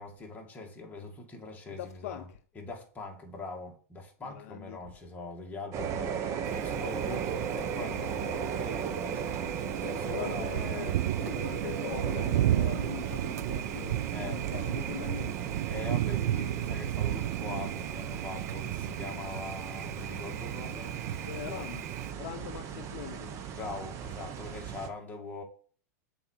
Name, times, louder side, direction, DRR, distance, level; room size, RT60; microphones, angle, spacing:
voice 1, 0.0-2.2 2.6-10.6 14.1-14.4 15.7-21.0 21.3-21.7 23.5-25.4, left 3 dB, 20° left, 2.0 m, -42 dB
voice 2, 1.7-2.3 4.2-4.8 9.7-15.4 21.3-21.8 22.1-23.4, left 13 dB, 65° left, 0.5 m, -42 dB
sound 1, 5.7-24.9, right 7 dB, 40° right, 0.9 m, -37 dB
Thunder, 6.4-22.1, right 13 dB, 75° right, 0.4 m, -34 dB
6.9 x 4.2 x 4.5 m
hypercardioid pair, 115°, 8 cm